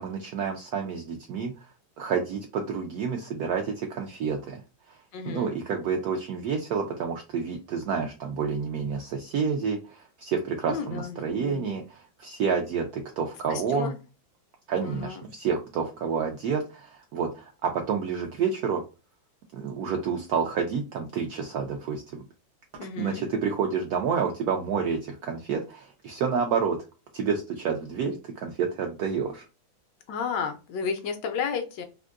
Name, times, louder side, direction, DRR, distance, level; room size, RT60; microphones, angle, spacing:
voice 1, 0.0-4.6 4.9-5.0 5.3-13.9 14.7-18.8 19.5-22.2 23.0-26.8 27.1-29.5, right 6 dB, 80° right, 3 dB, 0.8 m, -29 dB
voice 2, 5.1-5.5 10.7-11.9 13.5-13.9 14.8-15.3 22.8-23.2 30.1-31.8, left 6 dB, 75° left, 6 dB, 1.1 m, -33 dB
3.6 x 2.5 x 2.4 m, 0.31 s
omnidirectional pair, 2.1 m